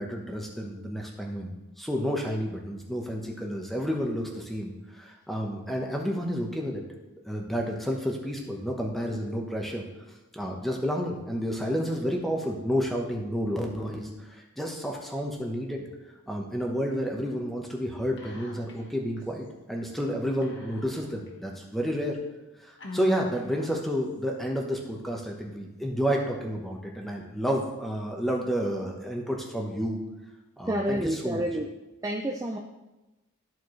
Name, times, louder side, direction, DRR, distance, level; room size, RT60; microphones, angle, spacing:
voice 1, 0.0-6.8 7.2-9.9 10.3-15.9 16.3-22.2 22.6-30.0 30.6-31.0 31.2-31.4, equal, ahead, 0.9 m, -30 dB
Whispering, 18.2-18.9 19.2-19.3 20.4-21.3 21.9-22.0 22.8-24.0, left 2 dB, 55° left, 1.3 m, -40 dB
voice 2, 30.6-31.7 32.0-32.6, right 1 dB, 15° right, 0.4 m, -29 dB
13.5 x 4.5 x 3.2 m
head